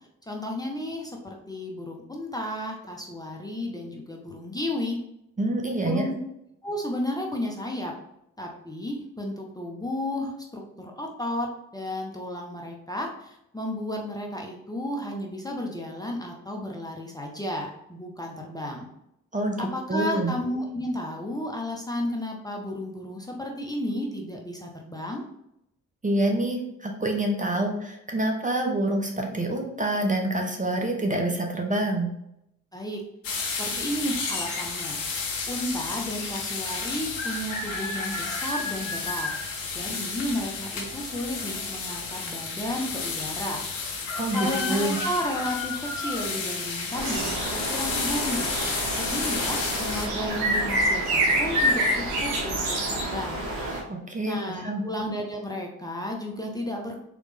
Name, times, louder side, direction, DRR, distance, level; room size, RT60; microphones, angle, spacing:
voice 1, 0.3-5.0 5.8-6.2 6.6-7.9 8.4-18.9 19.6-25.2 32.7-39.3 39.7-43.6 44.3-53.4 54.2-57.0, left 1 dB, 10° left, 0 dB, 0.9 m, -33 dB
voice 2, 5.4-6.1 19.3-19.6 19.9-20.3 26.0-32.1 44.2-45.0 53.9-54.4 54.6-54.8, right 1 dB, 20° right, 2 dB, 0.9 m, -26 dB
sound 1, 33.2-50.1, left 4 dB, 90° left, 0.7 m, -31 dB
sound 2, 46.9-53.8, right 1 dB, 70° right, 1.2 m, -27 dB
4.0 x 3.2 x 3.4 m, 0.80 s
hypercardioid pair, 45°, 38 cm